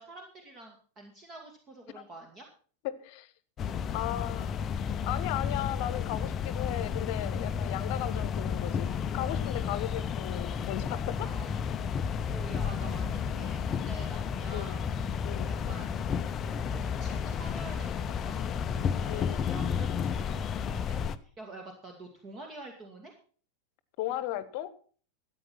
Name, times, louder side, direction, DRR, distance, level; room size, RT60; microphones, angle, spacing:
voice 1, 0.0-2.5 11.2-11.6 12.3-14.9 15.5-16.0 16.4-23.2, right 2 dB, 25° right, 3 dB, 2.1 m, -47 dB
voice 2, 2.8-3.3 3.9-4.6 5.0-11.3 14.5-14.8 15.2-15.5 19.1-19.4 24.0-24.7, left 13 dB, 45° left, 16 dB, 1.1 m, -36 dB
sound 1, 3.6-21.2, left 7 dB, 25° left, 0.7 m, -32 dB
14.0 x 8.9 x 5.8 m, 0.43 s
figure-of-eight pair, 90°, 0 cm